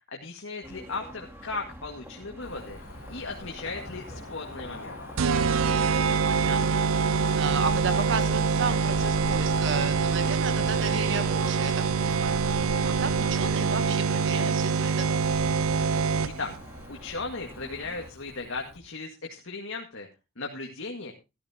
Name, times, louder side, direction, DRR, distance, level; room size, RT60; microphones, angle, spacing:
voice 1, 0.1-2.8 3.1-5.0 16.2-16.5 16.9-20.1 20.4-21.1, left 3 dB, 65° left, 1 dB, 1.9 m, -36 dB
sound 1, 0.6-18.1, equal, 10° right, 2.6 m, -46 dB
Cricket / Motor vehicle (road), 2.4-18.8, left 1 dB, 85° left, 2.8 m, -43 dB
sound 2, 5.2-16.6, right 5 dB, 75° right, 0.5 m, -25 dB
voice 2, 5.5-15.4, right 4 dB, 60° right, 9 dB, 1.4 m, -34 dB
13.5 x 13.0 x 2.9 m, 0.28 s
head